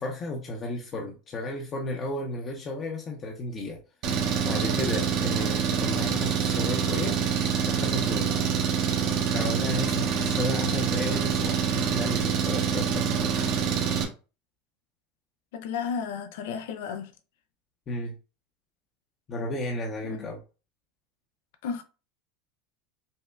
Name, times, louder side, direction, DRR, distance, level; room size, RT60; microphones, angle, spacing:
voice 1, 0.0-3.8 4.4-7.2 7.6-8.3 9.3-13.5 17.9-18.2 19.3-20.4, left 1 dB, 35° left, 0.7 m, -33 dB
Engine, 4.0-14.0, right 7 dB, 55° right, 0.8 m, -26 dB
voice 2, 15.5-17.1 20.0-20.3 21.6-21.8, left 6 dB, 75° left, 0.5 m, -33 dB
5.4 x 2.1 x 2.3 m
hypercardioid pair, 95°, 0 cm